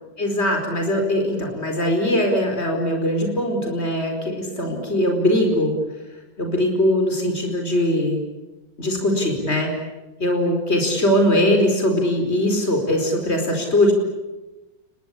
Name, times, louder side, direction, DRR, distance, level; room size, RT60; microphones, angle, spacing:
voice 1, 0.2-5.7 6.4-8.2 8.8-9.7 10.2-13.9, left 1 dB, 35° left, 4 dB, 5.2 m, -21 dB
29.0 x 22.0 x 8.5 m, 1.1 s
omnidirectional pair, 2.0 m